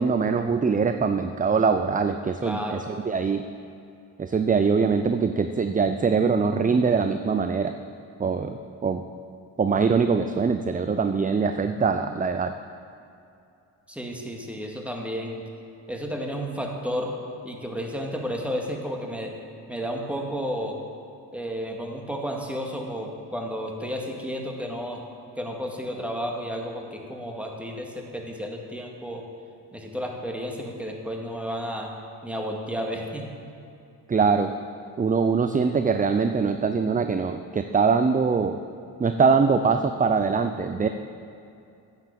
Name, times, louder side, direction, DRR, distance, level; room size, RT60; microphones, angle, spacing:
voice 1, 0.0-3.4 4.2-7.7 8.2-9.0 9.6-12.5 34.1-34.5 35.0-38.6 39.0-40.9, right 5 dB, 20° right, 8 dB, 0.5 m, -23 dB
voice 2, 2.4-2.8 13.9-15.4 15.9-17.1 17.4-19.3 19.7-20.8 21.3-25.0 25.4-29.2 29.7-31.9 32.2-33.3, equal, 5° right, 0 dB, 2.1 m, -32 dB
9.3 x 7.2 x 6.9 m, 2.5 s
supercardioid pair, 50°, 45 cm